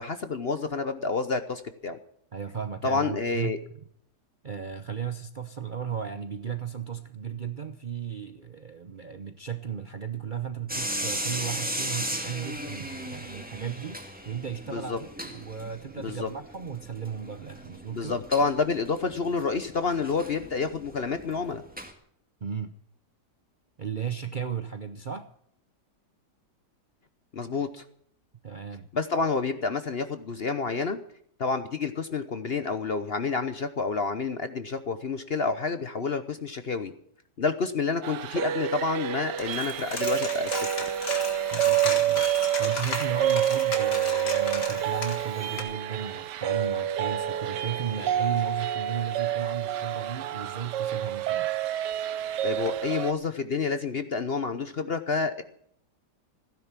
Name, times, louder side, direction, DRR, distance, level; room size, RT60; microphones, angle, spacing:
voice 1, 0.0-2.0 2.8-3.6 14.7-15.0 16.0-16.3 17.9-21.6 27.3-27.8 28.9-31.0 31.4-36.9 37.4-40.7 52.4-55.4, left 4 dB, 45° left, 10 dB, 0.9 m, -29 dB
voice 2, 2.3-3.5 4.4-18.2 22.4-22.8 23.8-25.3 28.4-28.9 41.5-42.3 42.6-51.5, right 7 dB, 45° right, 9 dB, 0.7 m, -35 dB
sound 1, 10.7-21.9, equal, 5° right, 1.9 m, -37 dB
sound 2, 38.0-53.1, right 11 dB, 85° right, 1.4 m, -28 dB
Coin (dropping), 39.4-45.6, left 3 dB, 75° left, 3.0 m, -35 dB
16.0 x 10.5 x 7.4 m, 0.66 s
omnidirectional pair, 1.8 m